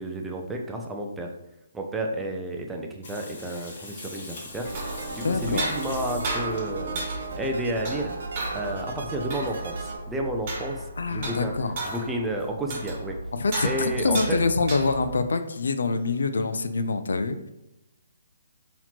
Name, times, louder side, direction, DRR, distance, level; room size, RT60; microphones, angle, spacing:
voice 1, 0.0-1.3 1.7-4.7 5.1-7.0 7.4-8.1 8.5-11.5 11.8-13.2 13.6-14.4, right 1 dB, 5° right, 2 dB, 0.4 m, -31 dB
Water tap faucet / Sink (filling or washing), 3.0-7.3 8.8-8.9 9.2-9.3 9.5-9.6, left 2 dB, 40° left, 1.3 m, -43 dB
sound 1, 4.5-15.2, right 2 dB, 35° right, 1.2 m, -34 dB
sound 2, 4.6-10.0, right 3 dB, 60° right, 0.5 m, -37 dB
voice 2, 5.2-5.7 11.0-11.7 13.4-17.4, left 4 dB, 80° left, 9 dB, 0.4 m, -25 dB
4.1 x 2.9 x 2.9 m, 0.88 s
hypercardioid pair, 160°, 0 cm